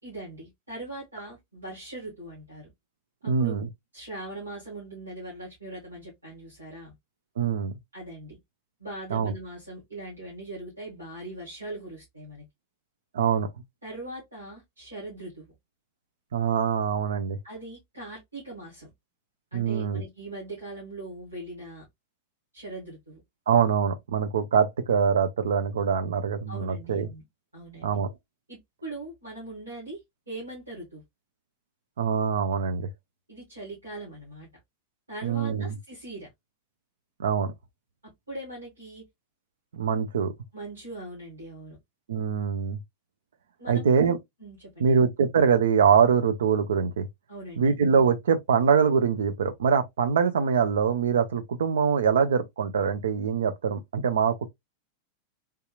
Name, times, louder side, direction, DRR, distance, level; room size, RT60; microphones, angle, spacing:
voice 1, 0.0-2.7 3.2-3.6 3.9-6.9 7.9-8.4 8.8-12.4 13.8-15.5 17.4-18.9 19.5-21.9 22.5-23.2 26.5-27.2 27.5-28.0 28.5-30.0 30.3-31.0 33.3-34.5 35.1-36.3 38.3-39.0 40.5-41.8 43.6-44.0 44.4-45.0 47.3-47.7, right 2 dB, 80° right, 2.0 m, -40 dB
voice 2, 3.2-3.7 7.4-7.7 9.1-9.3 13.1-13.5 16.3-17.4 19.5-20.0 23.5-27.1 27.8-28.1 32.0-32.9 35.2-35.7 37.2-37.5 39.7-40.3 42.1-42.8 43.7-44.2 44.8-47.1 47.6-54.5, right 6 dB, 65° right, 0.6 m, -24 dB
3.5 x 2.8 x 2.3 m
figure-of-eight pair, 90°, 0 cm